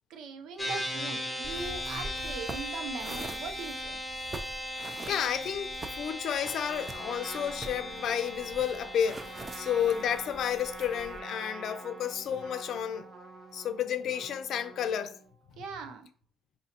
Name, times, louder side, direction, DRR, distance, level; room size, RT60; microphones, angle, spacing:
voice 1, 0.1-4.0 15.6-16.1, right 4 dB, 85° right, 0.6 m, -40 dB
sound 1, 0.6-14.1, equal, ahead, 1.1 m, -39 dB
sound 2, 1.4-11.2, right 2 dB, 30° right, 0.5 m, -45 dB
voice 2, 4.7-13.0 13.5-15.2, left 9 dB, 70° left, 0.5 m, -31 dB
Trumpet, 6.6-15.3, right 2 dB, 55° right, 1.2 m, -47 dB
5.1 x 2.7 x 2.9 m
cardioid pair, 90°, 0 cm